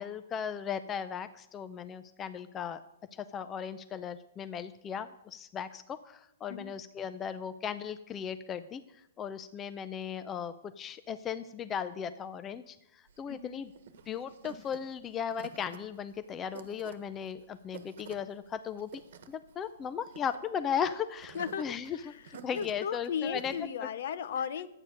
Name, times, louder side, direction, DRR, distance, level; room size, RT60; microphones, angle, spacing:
voice 1, 0.0-2.8 3.1-13.7 14.1-18.9 19.3-22.1 22.4-23.5, left 7 dB, 15° left, 11 dB, 0.4 m, -37 dB
sound 1, 13.1-23.7, right 7 dB, 65° right, 1.3 m, -51 dB
voice 2, 13.3-13.6 21.3-24.7, left 7 dB, 60° left, 16 dB, 0.7 m, -36 dB
11.5 x 9.0 x 6.5 m, 0.86 s
hypercardioid pair, 165°, 0 cm